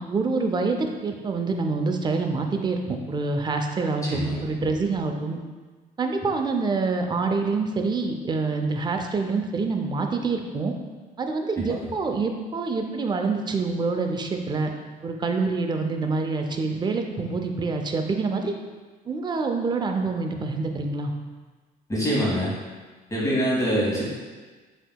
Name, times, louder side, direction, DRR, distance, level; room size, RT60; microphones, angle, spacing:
voice 1, 0.0-5.4 6.0-10.7 11.2-14.7 15.0-18.6 19.1-21.1, right 4 dB, 25° right, 4 dB, 0.4 m, -26 dB
voice 2, 4.0-4.4 11.6-11.8 21.9-22.5 23.1-24.0, equal, 20° left, -6 dB, 1.4 m, -25 dB
7.7 x 2.8 x 2.2 m, 1.4 s
cardioid pair, 110°, 17 cm